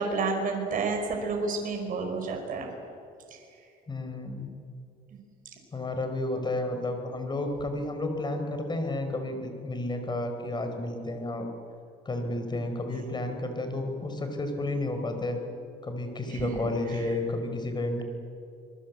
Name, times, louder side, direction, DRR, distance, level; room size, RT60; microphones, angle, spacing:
voice 1, 0.0-2.7 3.3-3.4 16.3-17.2, right 4 dB, 55° right, 2 dB, 4.9 m, -31 dB
voice 2, 3.9-4.5 5.7-11.5 12.0-15.4 15.8-18.0, left 2 dB, 25° left, 6 dB, 4.6 m, -31 dB
27.0 x 22.0 x 8.4 m, 2.5 s
cardioid pair, 110°, 17 cm